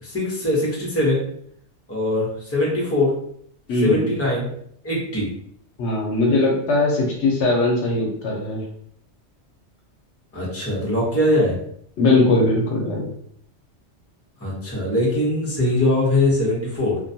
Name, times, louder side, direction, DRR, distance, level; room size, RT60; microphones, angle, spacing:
voice 1, 0.0-1.2 1.9-3.1 3.8-4.5 4.8-5.3 10.3-11.6 14.4-17.0, left 1 dB, 15° left, -5 dB, 0.7 m, -21 dB
voice 2, 3.7-4.1 5.8-8.6 12.0-13.1, left 2 dB, 70° left, -1 dB, 0.9 m, -20 dB
2.4 x 2.2 x 2.6 m, 0.67 s
omnidirectional pair, 1.2 m